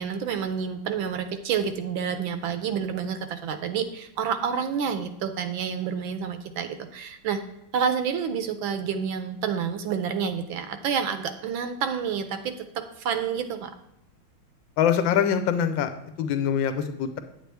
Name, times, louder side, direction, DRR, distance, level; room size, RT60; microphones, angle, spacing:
voice 1, 0.0-7.4 7.7-13.7, right 7 dB, 75° right, 9 dB, 1.4 m, -29 dB
voice 2, 14.8-15.9 16.2-17.2, left 8 dB, 70° left, 9 dB, 1.4 m, -23 dB
9.1 x 8.2 x 3.4 m, 0.80 s
omnidirectional pair, 2.3 m